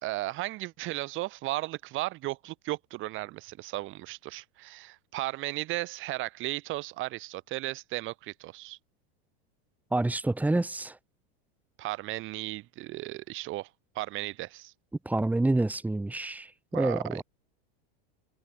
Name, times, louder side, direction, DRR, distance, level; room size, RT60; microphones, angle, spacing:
voice 1, 0.0-8.8 11.8-13.7 13.9-14.7 16.7-17.2, right 18 dB, 40° right, 5.1 m, -35 dB
voice 2, 9.9-11.0 15.1-17.2, right 2 dB, 5° right, 4.1 m, -28 dB
supercardioid pair, 150°, 30 cm